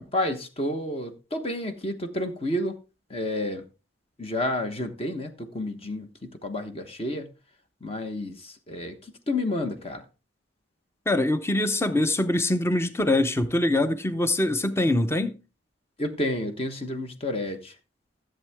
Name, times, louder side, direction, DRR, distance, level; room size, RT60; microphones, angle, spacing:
voice 1, 0.1-2.7 3.1-3.6 4.2-7.3 7.8-10.0 16.0-17.7, left 1 dB, 30° left, 1.1 m, -30 dB
voice 2, 11.1-15.4, left 1 dB, 15° left, 0.7 m, -23 dB
14.0 x 7.6 x 3.5 m
head